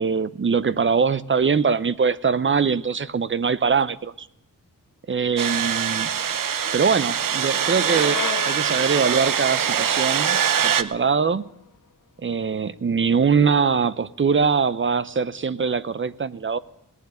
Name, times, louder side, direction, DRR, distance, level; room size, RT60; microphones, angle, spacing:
voice 1, 0.0-4.3 5.1-6.1 6.7-11.4 12.2-16.6, right 5 dB, 40° right, 0.6 m, -22 dB
sound 1, 5.4-10.8, right 8 dB, 75° right, 0.8 m, -23 dB
Bicycle, 5.8-11.6, left 7 dB, 70° left, 1.3 m, -37 dB
18.5 x 7.8 x 9.8 m
wide cardioid pair, 160°, 33 cm